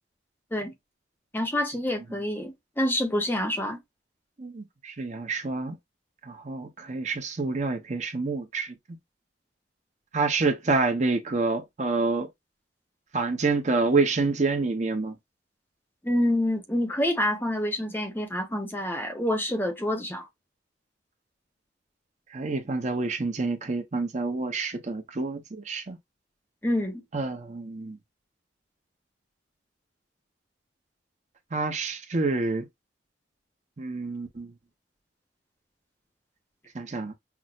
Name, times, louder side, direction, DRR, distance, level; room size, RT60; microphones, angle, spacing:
voice 1, 1.3-3.8 16.0-20.3 26.6-27.0, left 1 dB, 10° left, 0.7 m, -27 dB
voice 2, 4.4-5.8 6.2-8.7 10.1-12.3 13.1-15.1 22.3-26.0 27.1-28.0 31.5-32.6 33.8-34.5 36.7-37.1, right 3 dB, 40° right, 0.7 m, -28 dB
5.9 x 2.0 x 2.3 m
head